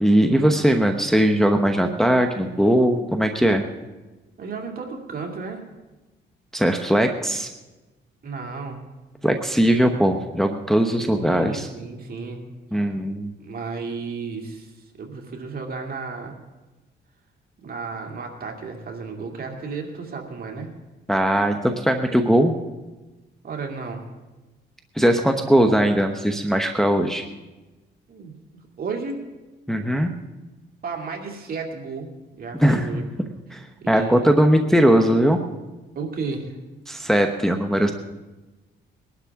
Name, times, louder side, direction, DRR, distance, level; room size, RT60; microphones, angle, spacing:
voice 1, 0.0-3.6 6.5-7.5 9.2-11.7 12.7-13.3 21.1-22.5 25.0-27.2 29.7-30.1 32.6-33.0 33.5-33.6 33.9-35.4 36.9-37.9, equal, ahead, 4 dB, 0.9 m, -19 dB
voice 2, 4.4-5.6 8.2-8.8 11.0-12.5 13.4-14.7 15.0-16.3 17.6-20.7 23.4-24.0 28.1-29.2 30.8-32.1 32.4-33.0 33.8-34.3 36.0-36.5, right 4 dB, 50° right, 2 dB, 2.5 m, -33 dB
21.0 x 11.5 x 3.6 m, 1.1 s
cardioid pair, 90°, 20 cm